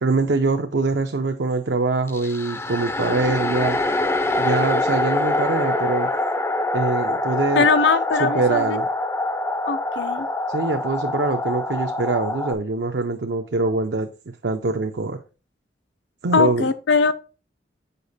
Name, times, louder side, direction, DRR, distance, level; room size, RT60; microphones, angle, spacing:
voice 1, 0.0-3.8 4.4-6.1 6.7-7.7 8.2-8.9 10.5-14.1 14.4-15.2 16.2-16.7, right 3 dB, 70° right, 0.6 m, -23 dB
sound 1, 2.1-12.5, left 2 dB, 15° left, 0.4 m, -25 dB
voice 2, 7.6-8.8 9.7-10.3 16.3-17.1, left 5 dB, 75° left, 0.6 m, -20 dB
6.8 x 5.0 x 4.0 m
head